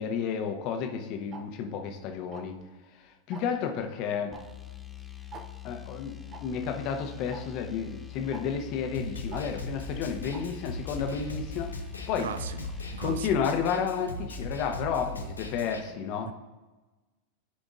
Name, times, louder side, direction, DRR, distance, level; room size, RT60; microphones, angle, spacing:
voice 1, 0.0-2.6 3.3-4.3 5.6-11.7 12.1-12.3 13.0-16.3, left 7 dB, 40° left, 0.9 m, -31 dB
Tick-tock, 1.3-1.4 2.3-2.6 3.3-3.6 4.3-4.4 4.7-4.8 5.3-5.4 6.3-6.4 7.3-7.4 8.3-8.4 9.3-9.4 10.3-10.4, right 4 dB, 30° right, 0.8 m, -43 dB
sound 1, 4.3-13.4, left 13 dB, 5° left, 0.6 m, -44 dB
Snare drum, 8.9-15.8, left 1 dB, 80° left, 0.7 m, -39 dB
voice 2, 12.2-13.4 16.3-16.4, right 8 dB, 60° right, 0.4 m, -38 dB
14.0 x 5.0 x 2.4 m
figure-of-eight pair, 90°, 0 cm